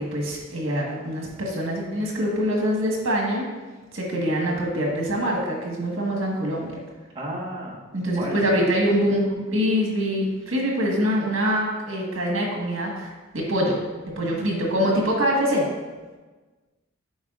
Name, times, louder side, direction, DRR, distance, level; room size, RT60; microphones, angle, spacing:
voice 1, 0.0-3.5 3.9-6.7 7.9-13.8 14.2-15.7, equal, 85° right, -1 dB, 1.5 m, -24 dB
voice 2, 7.1-7.8 8.1-8.4 14.3-14.5, equal, 25° right, -5 dB, 1.4 m, -32 dB
8.7 x 4.6 x 2.5 m, 1.3 s
head